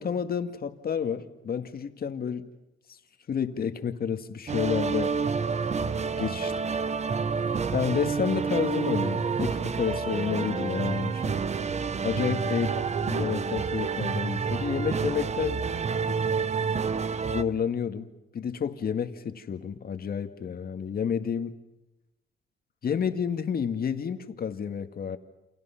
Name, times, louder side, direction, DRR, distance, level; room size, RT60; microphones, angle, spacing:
voice 1, 0.0-2.5 2.9-3.0 3.3-5.2 6.2-6.5 7.7-11.4 12.0-15.6 16.1-16.2 17.3-21.5 22.8-25.2, left 7 dB, 50° left, 8 dB, 1.9 m, -30 dB
sound 1, 4.5-17.4, right 5 dB, 35° right, 1.0 m, -29 dB
29.0 x 27.5 x 5.9 m, 0.96 s
cardioid pair, 90°, 20 cm